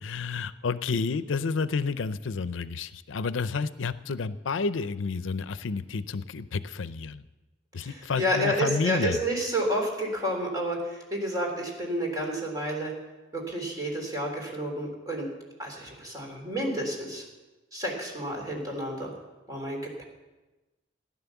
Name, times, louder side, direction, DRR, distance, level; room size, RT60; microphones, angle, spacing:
voice 1, 0.0-7.2 7.7-9.2, left 4 dB, 85° left, 14 dB, 0.5 m, -30 dB
voice 2, 7.8-12.9 13.3-15.2 15.6-17.2 17.7-19.1 19.5-20.0, equal, 20° right, -1 dB, 3.5 m, -30 dB
15.5 x 10.5 x 7.0 m, 1.1 s
head